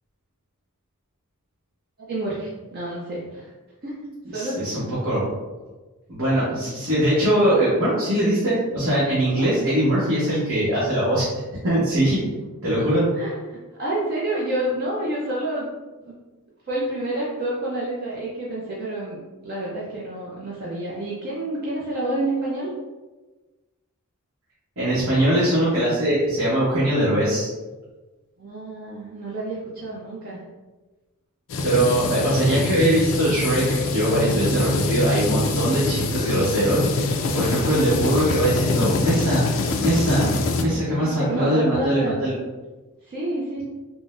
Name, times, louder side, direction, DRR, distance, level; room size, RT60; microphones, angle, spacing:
voice 1, 2.0-3.5 3.8-4.0 4.3-4.6 9.4-9.5 13.2-15.7 16.0-16.1 16.7-22.7 28.4-30.4 41.0-42.2 43.1-43.6, right 1 dB, 45° right, -6 dB, 0.5 m, -29 dB
voice 2, 4.3-5.3 6.1-12.2 12.6-13.0 24.8-27.5 31.6-40.3 40.6-42.3, right 1 dB, 65° right, -11 dB, 1.0 m, -21 dB
sound 1, 31.5-40.6, left 3 dB, 60° left, 0.3 m, -25 dB
3.7 x 2.0 x 2.5 m, 1.2 s
head